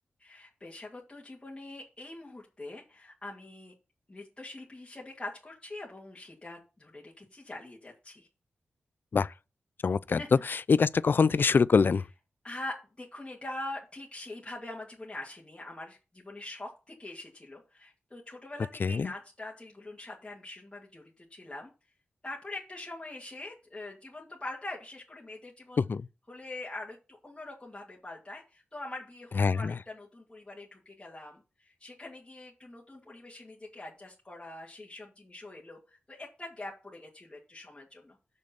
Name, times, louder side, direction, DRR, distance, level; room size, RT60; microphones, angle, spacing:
voice 1, 0.2-3.7 4.1-8.3 10.1-10.3 12.4-21.7 22.2-25.9 26.3-38.2, left 2 dB, 25° left, 2.3 m, -43 dB
voice 2, 9.8-10.2 10.5-12.0 18.8-19.1 25.8-26.1 29.4-29.7, left 5 dB, 55° left, 0.4 m, -24 dB
6.4 x 5.3 x 7.1 m
wide cardioid pair, 75°, 4 cm